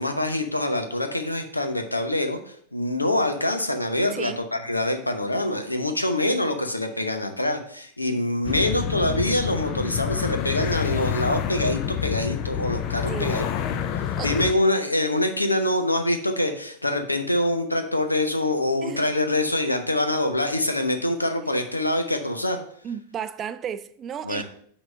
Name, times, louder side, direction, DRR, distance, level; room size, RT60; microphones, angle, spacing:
voice 1, 0.0-13.4 14.2-22.6 24.2-24.4, left 1 dB, 85° left, 0.8 m, -25 dB
voice 2, 4.1-4.4 13.1-13.4 14.0-14.4 18.8-19.1 22.8-24.4, right 8 dB, 25° right, 0.3 m, -34 dB
sound 1, 8.4-14.5, left 9 dB, 40° left, 0.5 m, -28 dB
6.0 x 4.0 x 6.2 m
figure-of-eight pair, 90°, 0 cm